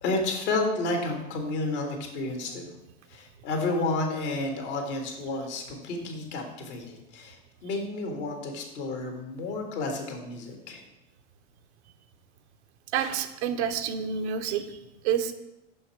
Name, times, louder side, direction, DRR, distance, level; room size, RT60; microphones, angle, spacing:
voice 1, 0.0-2.7 3.1-10.8, left 2 dB, 70° left, 2 dB, 1.8 m, -31 dB
voice 2, 12.9-14.8 15.0-15.3, right 8 dB, 70° right, 8 dB, 0.7 m, -28 dB
5.9 x 5.6 x 4.4 m, 0.93 s
hypercardioid pair, 95°, 36 cm